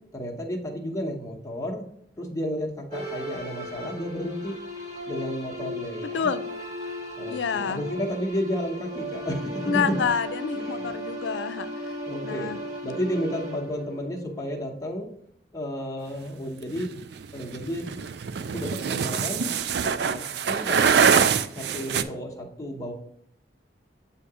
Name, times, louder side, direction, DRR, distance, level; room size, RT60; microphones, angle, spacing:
voice 1, 0.1-1.8 2.2-4.6 5.1-6.3 7.2-9.9 10.5-11.0 12.1-12.6 12.8-15.1 15.5-16.9 17.3-17.8 18.5-19.4 19.8-22.9, equal, 20° left, 0 dB, 0.9 m, -32 dB
sound 1, 2.9-14.7, equal, 40° right, 1.5 m, -36 dB
voice 2, 7.3-7.8 9.6-11.7 12.2-12.6, left 6 dB, 85° left, 12 dB, 0.4 m, -28 dB
sound 2, 16.8-22.0, right 6 dB, 70° right, 0.4 m, -24 dB
8.3 x 2.8 x 4.8 m, 0.67 s
head